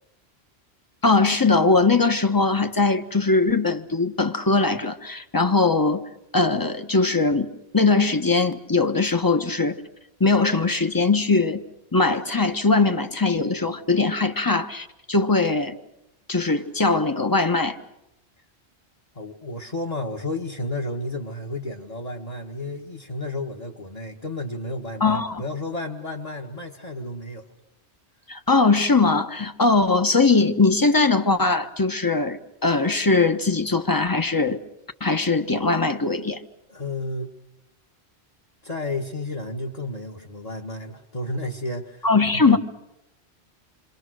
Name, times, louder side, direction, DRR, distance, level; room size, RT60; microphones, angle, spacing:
voice 1, 1.0-6.1 6.3-9.8 10.2-11.6 11.9-15.8 16.3-17.8 25.0-25.4 28.3-34.6 35.0-36.4 42.0-42.6, left 3 dB, 20° left, 1.2 m, -21 dB
voice 2, 19.2-27.5 36.7-37.3 38.6-42.1 42.3-42.6, left 2 dB, 35° left, 1.7 m, -32 dB
28.0 x 24.5 x 6.4 m
omnidirectional pair, 1.1 m